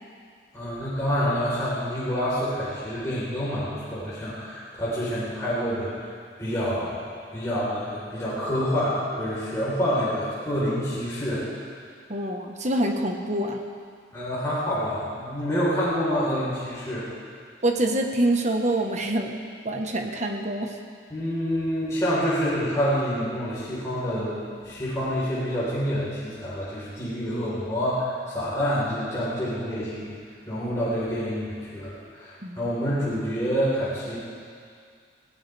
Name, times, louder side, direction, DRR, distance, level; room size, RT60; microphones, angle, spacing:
voice 1, 0.5-6.1 6.4-11.5 14.1-17.1 21.1-30.1 30.5-34.2, equal, 15° left, -10 dB, 4.3 m, -27 dB
voice 2, 12.1-13.6 17.6-19.4 19.6-20.7 32.4-32.7, right 1 dB, 40° right, 3 dB, 1.3 m, -26 dB
21.0 x 16.5 x 3.5 m, 2.2 s
head